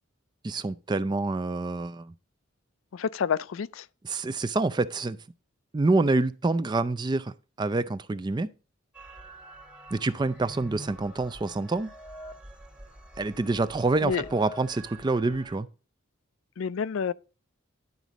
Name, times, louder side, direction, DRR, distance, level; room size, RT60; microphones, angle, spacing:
voice 1, 0.4-2.1 4.0-5.2 5.7-8.5 9.9-11.9 13.2-15.7, right 3 dB, 20° right, 0.3 m, -27 dB
voice 2, 2.9-3.9 14.0-14.2 16.6-17.1, left 6 dB, 70° left, 0.4 m, -28 dB
sound 1, 8.9-15.6, right 1 dB, 5° right, 1.0 m, -46 dB
11.0 x 4.1 x 4.9 m
head